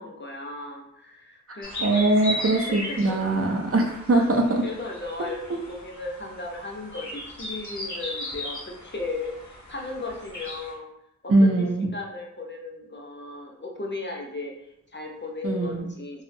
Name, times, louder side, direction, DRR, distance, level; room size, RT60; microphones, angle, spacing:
voice 1, 0.0-2.2 3.1-3.2 4.1-4.3 4.6-5.4 5.7-10.9 11.2-11.3 11.6-11.7 11.9-16.2, left 3 dB, 40° left, 0 dB, 0.5 m, -36 dB
sound 1, 1.6-10.7, equal, 75° left, 0.7 m, -37 dB
voice 2, 1.8-4.6 11.3-11.9 15.4-15.9, right 2 dB, 50° right, 1 dB, 0.4 m, -21 dB
2.6 x 2.0 x 2.5 m, 0.80 s
wide cardioid pair, 40°, 29 cm